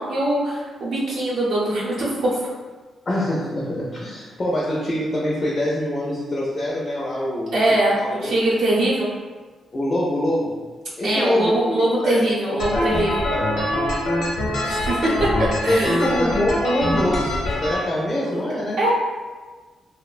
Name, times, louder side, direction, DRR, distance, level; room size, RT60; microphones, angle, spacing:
voice 1, 0.0-2.4 7.5-9.1 11.0-13.2 14.6-15.3 15.6-16.1 18.3-18.4 18.8-18.9, right 1 dB, 70° right, -7 dB, 0.6 m, -22 dB
voice 2, 3.1-7.6 8.0-8.3 9.7-10.6 11.0-12.2 12.5-12.9 13.3-13.6 15.7-18.8, left 1 dB, 25° left, -5 dB, 0.4 m, -24 dB
sound 1, 12.6-17.7, left 1 dB, 80° left, 0.7 m, -24 dB
2.9 x 2.0 x 2.4 m, 1.4 s
wide cardioid pair, 170°, 0 cm